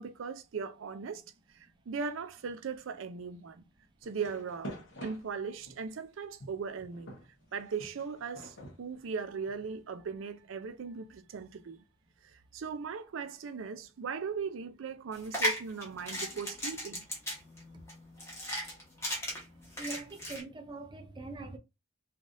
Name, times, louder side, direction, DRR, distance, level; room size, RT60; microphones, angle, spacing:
voice 1, 0.0-3.6 4.0-7.2 7.5-11.8 12.2-17.0, right 5 dB, 80° right, 0.4 m, -39 dB
sound 1, 4.0-5.9 6.4-9.7, equal, 65° left, 1.0 m, -47 dB
sound 2, 15.1-20.4, equal, 15° left, 1.1 m, -36 dB
voice 2, 19.8-21.6, right 3 dB, 25° right, 0.5 m, -42 dB
3.3 x 2.4 x 2.5 m
head